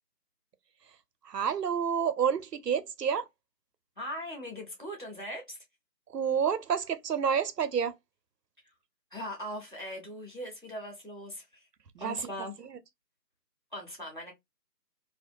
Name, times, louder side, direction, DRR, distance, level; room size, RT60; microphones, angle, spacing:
voice 1, 1.2-3.3 6.1-8.0 11.9-12.2, right 7 dB, 70° right, 0.6 m, -29 dB
voice 2, 4.0-5.6 8.6-8.7 9.1-11.7 12.0-12.5 13.7-14.3, equal, 30° right, 0.7 m, -40 dB
2.4 x 2.1 x 2.5 m
figure-of-eight pair, 165°, 49 cm